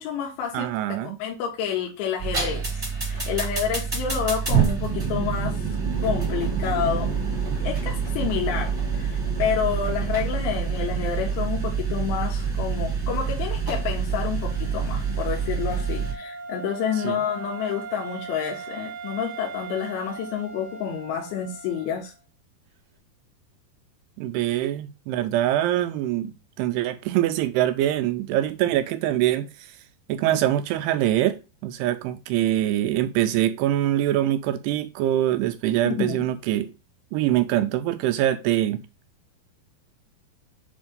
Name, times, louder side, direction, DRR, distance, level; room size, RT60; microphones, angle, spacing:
voice 1, 0.0-5.7 6.0-7.1 7.6-22.1 35.9-36.2, left 8 dB, 90° left, 3.2 m, -29 dB
voice 2, 0.5-1.2 17.0-17.2 24.2-29.5 30.1-36.7 37.1-38.8, right 13 dB, 80° right, 2.5 m, -24 dB
sound 1, 2.2-16.1, right 6 dB, 10° right, 1.3 m, -26 dB
Wind instrument woodwind instrument, 14.3-22.1, right 4 dB, 65° right, 2.6 m, -39 dB
7.1 x 2.7 x 5.1 m
omnidirectional pair, 4.9 m